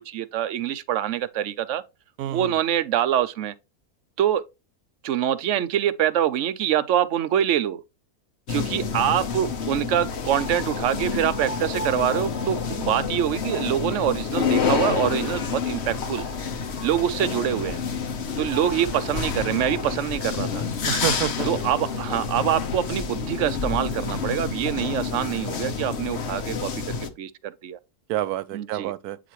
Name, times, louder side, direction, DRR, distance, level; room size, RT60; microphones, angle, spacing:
voice 1, 0.1-1.8 2.3-3.5 4.2-4.4 5.0-7.8 8.5-16.2 16.8-17.8 18.4-20.6 21.4-27.8 28.5-28.9, right 10 dB, 60° right, 0.9 m, -25 dB
voice 2, 2.2-2.5 20.9-21.5 28.1-29.2, right 13 dB, 80° right, 1.1 m, -28 dB
sound 1, 8.5-27.1, left 5 dB, 50° left, 1.1 m, -28 dB
Squeak, 14.4-22.0, left 6 dB, 70° left, 1.4 m, -47 dB
8.7 x 5.0 x 3.0 m
omnidirectional pair, 1.6 m